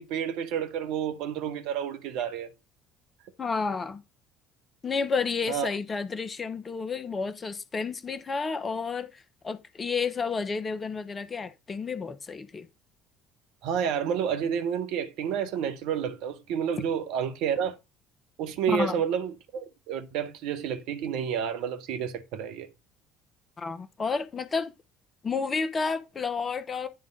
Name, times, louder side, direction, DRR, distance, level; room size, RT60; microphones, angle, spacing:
voice 1, 0.0-2.5 5.5-5.7 13.6-17.7 18.4-22.7, right 8 dB, 60° right, 1.0 m, -30 dB
voice 2, 3.4-4.0 4.8-12.7 18.7-18.9 23.6-24.7 25.2-26.9, left 5 dB, 30° left, 1.0 m, -31 dB
10.0 x 3.7 x 5.2 m
figure-of-eight pair, 55°, 0 cm